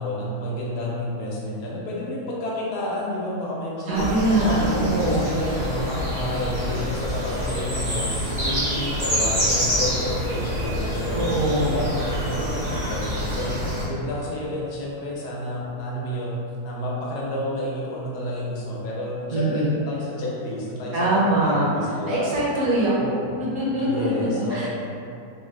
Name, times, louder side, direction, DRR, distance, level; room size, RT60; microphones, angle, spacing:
voice 1, 0.0-4.1 4.4-11.3 11.6-12.0 12.2-21.0 21.4-22.3 23.8-24.7, left 1 dB, 85° left, -5 dB, 1.2 m, -30 dB
sound 1, 3.9-13.9, equal, 45° right, 0.5 m, -27 dB
voice 2, 3.9-5.3 11.1-11.7 19.3-19.7 20.9-21.7 22.1-24.7, right 1 dB, 65° right, -7 dB, 1.1 m, -23 dB
3.7 x 2.2 x 2.4 m, 2.6 s
omnidirectional pair, 1.7 m